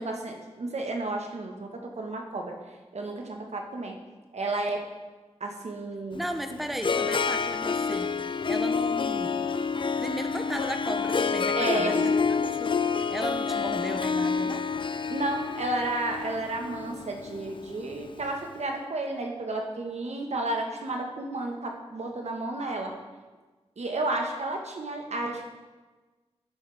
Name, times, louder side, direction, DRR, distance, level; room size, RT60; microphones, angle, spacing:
voice 1, 0.0-2.6 2.9-4.0 4.3-4.8 5.4-6.2 11.5-12.1 14.9-23.0 23.8-25.6, right 2 dB, 80° right, 2 dB, 1.3 m, -32 dB
Harp, 6.1-18.3, left 5 dB, 50° left, 0.4 m, -28 dB
voice 2, 6.1-8.1 8.5-9.4 10.0-14.7, equal, ahead, 6 dB, 0.7 m, -36 dB
11.5 x 9.0 x 3.4 m, 1.2 s
wide cardioid pair, 85°, 11 cm